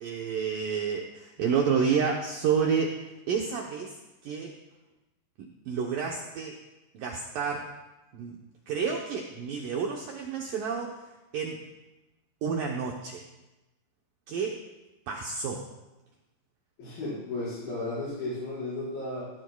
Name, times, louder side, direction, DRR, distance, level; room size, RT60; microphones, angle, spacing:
voice 1, 0.0-4.5 5.4-6.6 6.9-7.7 8.1-8.4 8.7-11.0 11.3-11.6 12.4-13.2 14.3-14.6 15.1-15.7, right 6 dB, 70° right, 0 dB, 2.2 m, -30 dB
voice 2, 16.8-19.3, left 2 dB, 55° left, -11 dB, 6.6 m, -34 dB
18.0 x 16.5 x 2.3 m, 1.0 s
omnidirectional pair, 5.0 m